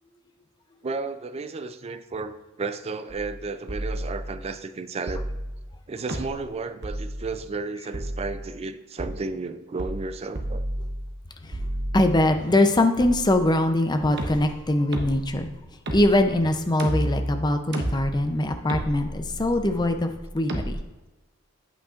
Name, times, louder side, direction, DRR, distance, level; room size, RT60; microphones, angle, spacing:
voice 1, 0.8-5.3 5.9-10.6, right 3 dB, 30° right, 11 dB, 0.4 m, -33 dB
sound 1, 3.1-3.4 3.7-4.5 5.1-5.7 6.1-6.5 6.8-7.4 7.9-8.6 9.0-9.1 9.8-10.1 10.4-11.2 11.5-12.4 13.0-13.8 14.2-20.8, right 1 dB, 50° right, 1.0 m, -32 dB
voice 2, 11.9-15.5 15.9-20.8, left 1 dB, 20° left, 6 dB, 0.6 m, -22 dB
8.7 x 8.3 x 2.5 m, 1.1 s
head